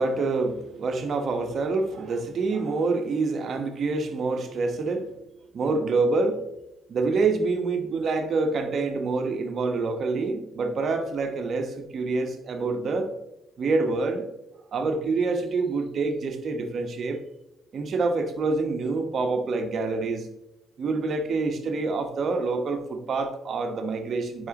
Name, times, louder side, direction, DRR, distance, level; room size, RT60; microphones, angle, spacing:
voice 1, 0.0-5.1 5.5-6.4 6.9-13.1 13.6-14.3 14.7-17.2 17.7-20.3 20.8-24.5, right 3 dB, 60° right, 6 dB, 1.2 m, -26 dB
9.4 x 4.9 x 3.0 m, 0.89 s
supercardioid pair, 60°, 0 cm